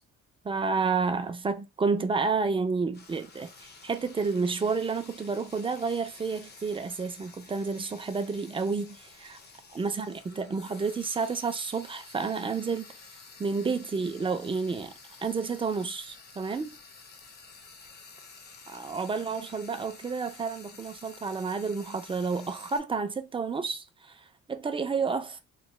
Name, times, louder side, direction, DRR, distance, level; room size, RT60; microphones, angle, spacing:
voice 1, 0.4-9.4 9.7-12.9 13.4-14.9 15.2-16.8 18.7-25.4, right 4 dB, 20° right, 0.4 m, -30 dB
Frying (food), 2.9-22.8, left 4 dB, 35° left, 0.6 m, -51 dB
3.0 x 2.1 x 3.1 m
cardioid pair, 125°, 29 cm